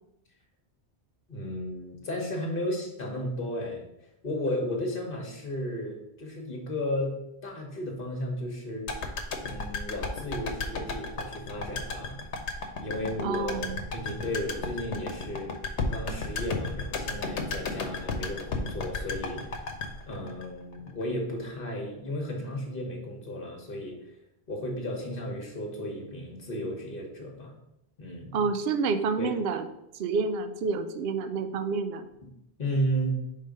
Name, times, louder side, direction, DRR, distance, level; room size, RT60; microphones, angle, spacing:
voice 1, 1.3-3.8 4.2-7.1 7.4-8.9 9.4-12.2 12.8-15.5 15.9-19.4 20.1-24.0 24.5-27.5 28.0-28.4 29.2-29.3 32.6-33.2, equal, 55° left, 1 dB, 1.5 m, -34 dB
sound 1, 8.9-21.0 21.3-21.4, left 3 dB, 90° left, 1.1 m, -34 dB
voice 2, 13.2-13.8 28.3-29.6 30.0-32.1, right 4 dB, 70° right, 9 dB, 0.8 m, -29 dB
5.3 x 3.8 x 5.1 m, 0.84 s
omnidirectional pair, 1.1 m